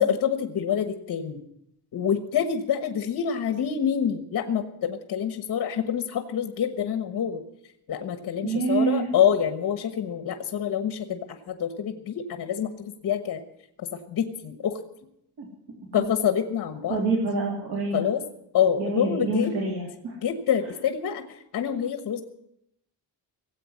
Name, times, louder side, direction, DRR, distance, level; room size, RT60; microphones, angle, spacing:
voice 1, 0.0-1.4 1.9-7.4 7.9-11.2 11.5-12.7 13.0-13.4 13.8-14.8 15.9-17.0 17.9-18.2 18.5-19.5 20.2-22.2, left 8 dB, 60° left, 8 dB, 1.3 m, -26 dB
voice 2, 8.4-9.1 15.4-15.5 16.9-18.1 18.8-20.2, right 4 dB, 85° right, -3 dB, 3.6 m, -26 dB
18.0 x 8.3 x 9.7 m, 0.77 s
wide cardioid pair, 180°, 38 cm